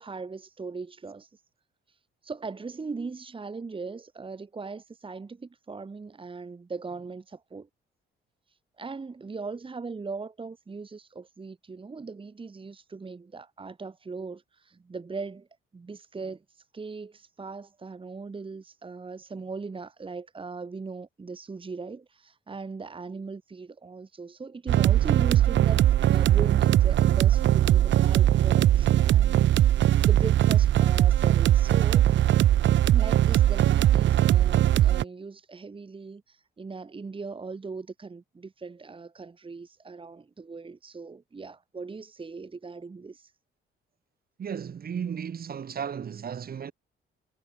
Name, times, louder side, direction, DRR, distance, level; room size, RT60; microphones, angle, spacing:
voice 1, 0.0-1.4 1.9-2.0 2.2-7.7 8.5-15.5 15.7-32.2 32.9-43.3, right 4 dB, 25° right, 1.7 m, -39 dB
sound 1, 24.7-35.0, right 12 dB, 65° right, 1.0 m, -20 dB
voice 2, 44.4-46.7, right 7 dB, 50° right, 2.6 m, -34 dB
cardioid pair, 90°, 20 cm